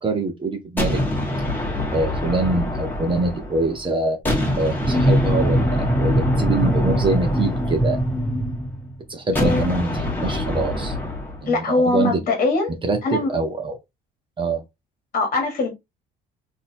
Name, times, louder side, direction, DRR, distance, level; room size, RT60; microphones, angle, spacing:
voice 1, 0.0-1.0 1.9-4.2 4.6-8.0 9.1-9.9 10.2-11.0 11.4-12.2 12.8-13.8 14.4-14.6, right 3 dB, 30° right, 0.9 m, -24 dB
sound 1, 0.8-3.8 4.2-8.5 9.3-11.5, left 1 dB, 10° left, 1.6 m, -26 dB
sound 2, 4.8-9.1, equal, 5° right, 1.7 m, -22 dB
voice 2, 9.3-9.7 11.5-12.7 13.0-13.3 15.1-15.7, left 3 dB, 50° left, 1.3 m, -21 dB
3.9 x 2.8 x 2.7 m
cardioid pair, 110°, 17 cm